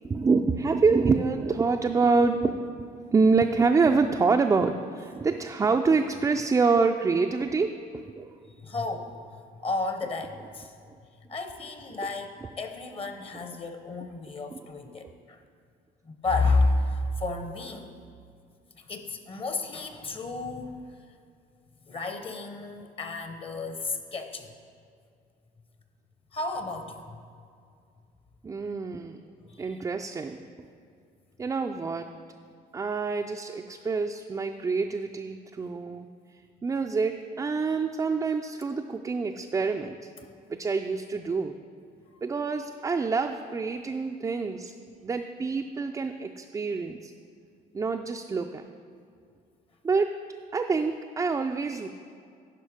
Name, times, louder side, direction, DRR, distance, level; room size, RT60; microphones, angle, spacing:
voice 1, 0.0-2.9 3.1-8.3 14.5-14.7 28.4-29.2 29.6-30.4 31.4-32.1 32.7-36.1 36.6-40.1 40.5-41.6 42.2-44.7 45.0-47.1 47.7-48.6 49.8-50.2 50.5-51.9, right 4 dB, 20° right, 4 dB, 0.3 m, -26 dB
voice 2, 8.6-9.1 9.6-10.7 11.3-15.4 16.0-17.9 18.8-20.9 21.9-24.5 26.3-27.2 29.5-29.8 40.2-40.3 42.1-42.2, left 3 dB, 35° left, 7 dB, 0.8 m, -31 dB
11.0 x 5.2 x 5.0 m, 2.3 s
cardioid pair, 110°, 17 cm